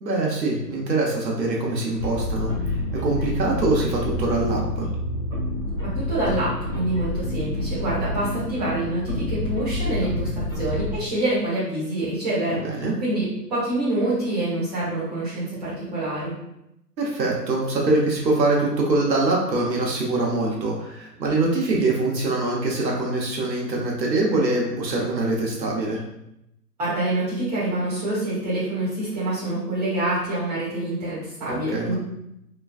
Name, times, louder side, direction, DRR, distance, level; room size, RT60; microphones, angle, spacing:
voice 1, 0.0-4.9 12.6-12.9 17.0-26.0 31.5-32.0, right 2 dB, 80° right, -2 dB, 1.0 m, -24 dB
sound 1, 2.0-11.0, left 1 dB, 20° left, 0.8 m, -28 dB
voice 2, 5.9-12.6 13.0-16.4 26.8-32.0, right 1 dB, 25° right, -9 dB, 1.1 m, -26 dB
3.0 x 2.2 x 2.4 m, 0.83 s
hypercardioid pair, 160°, 50 cm